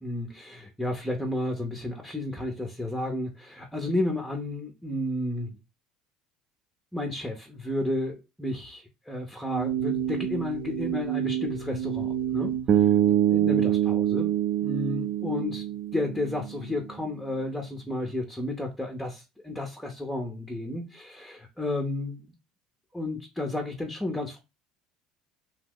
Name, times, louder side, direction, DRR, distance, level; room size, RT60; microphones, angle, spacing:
voice 1, 0.0-5.6 6.9-12.9 13.3-14.3 14.6-15.7 15.9-22.3 22.9-24.4, left 2 dB, 5° left, 0.6 m, -32 dB
sound 1, 9.4-12.7, right 10 dB, 85° right, 0.7 m, -30 dB
Bass guitar, 12.7-16.8, right 11 dB, 45° right, 0.3 m, -24 dB
2.8 x 2.0 x 3.6 m
supercardioid pair, 105°, 0 cm